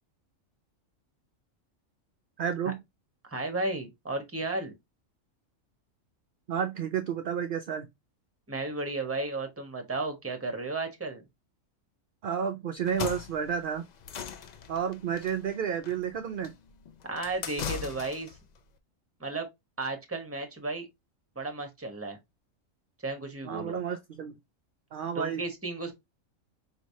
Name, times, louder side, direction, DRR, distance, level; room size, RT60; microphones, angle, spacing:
voice 1, 2.4-2.8 6.5-7.9 12.2-13.8 14.7-16.6 23.4-24.4 24.9-25.4, right 8 dB, 60° right, 0.5 m, -31 dB
voice 2, 3.2-4.7 8.5-11.2 17.0-18.4 19.2-19.5 19.8-20.9 21.4-22.2 23.0-23.8 25.1-25.9, right 2 dB, 10° right, 0.9 m, -34 dB
sound 1, 12.8-18.4, left 7 dB, 90° left, 0.3 m, -39 dB
4.9 x 3.1 x 2.6 m
omnidirectional pair, 1.4 m